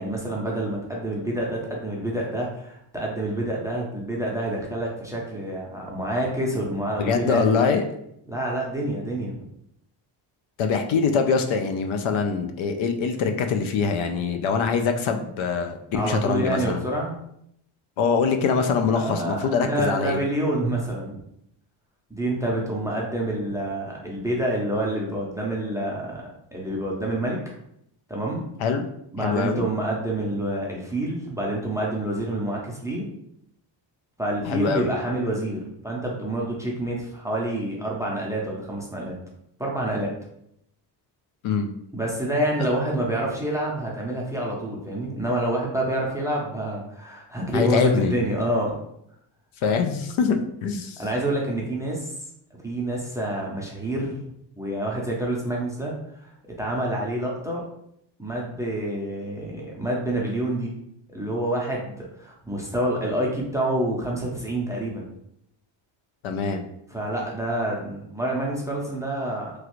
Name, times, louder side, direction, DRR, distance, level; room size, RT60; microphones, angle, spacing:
voice 1, 0.0-7.6 8.3-9.5 15.9-17.2 18.9-21.2 22.1-26.2 26.5-27.4 28.1-28.4 29.1-33.1 34.2-39.2 39.6-40.1 41.9-48.7 51.0-52.1 52.6-54.2 54.6-55.9 56.2-56.3 56.6-57.6 58.2-60.7 61.1-65.1 66.9-69.6, right 1 dB, 5° right, -2 dB, 0.4 m, -27 dB
voice 2, 7.0-7.8 10.6-16.8 18.0-20.2 28.6-28.9 29.2-29.7 34.4-34.9 41.4-41.7 47.5-48.1 49.6-51.0 66.2-66.6, left 5 dB, 75° left, 6 dB, 0.5 m, -23 dB
3.1 x 2.4 x 3.0 m, 0.75 s
cardioid pair, 140°, 47 cm